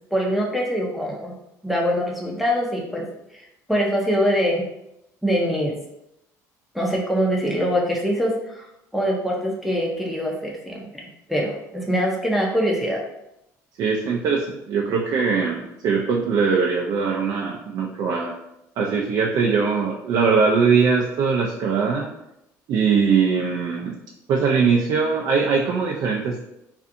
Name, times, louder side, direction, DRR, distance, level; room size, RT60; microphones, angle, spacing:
voice 1, 0.1-1.3 1.6-3.1 3.3-4.6 5.2-5.8 6.7-8.6 8.9-13.0, equal, ahead, -3 dB, 0.5 m, -23 dB
voice 2, 13.8-18.3 18.8-22.1 22.7-24.0 24.3-26.4, right 5 dB, 60° right, -1 dB, 0.4 m, -21 dB
2.5 x 2.4 x 2.5 m, 0.84 s
supercardioid pair, 90°, 7 cm